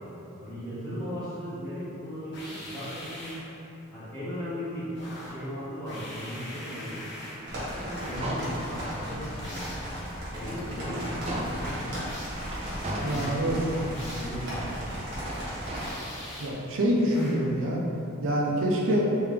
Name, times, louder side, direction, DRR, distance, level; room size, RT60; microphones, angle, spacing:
voice 1, 0.4-3.4 3.9-7.0 7.5-9.9 10.3-12.1 12.8-15.0, equal, 10° left, -20 dB, 1.4 m, -36 dB
sound 1, 2.3-3.5 5.0-5.5 5.9-7.5 7.9-8.3 9.4-9.9 12.1-12.5 13.1-13.4 13.9-14.4 15.8-16.7 17.1-17.5, left 1 dB, 55° left, 1.0 m, -43 dB
sound 2, 7.4-9.0 9.5-9.6 10.1-11.8 12.4-13.9 14.5-15.8, right 1 dB, 30° right, 0.4 m, -39 dB
sound 3, 7.5-15.9, equal, 55° right, 1.5 m, -36 dB
voice 2, 13.0-13.6 16.4-17.8 18.2-19.1, equal, 70° right, -3 dB, 0.6 m, -26 dB
3.5 x 3.4 x 3.3 m, 2.9 s
head